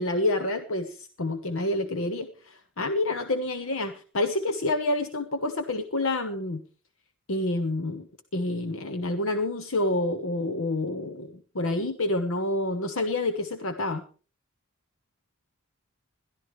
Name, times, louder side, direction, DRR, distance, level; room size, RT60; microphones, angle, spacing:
voice 1, 0.0-6.6 7.3-8.1 8.3-14.0, left 2 dB, 65° left, 8 dB, 1.1 m, -28 dB
21.5 x 13.0 x 3.2 m, 0.37 s
head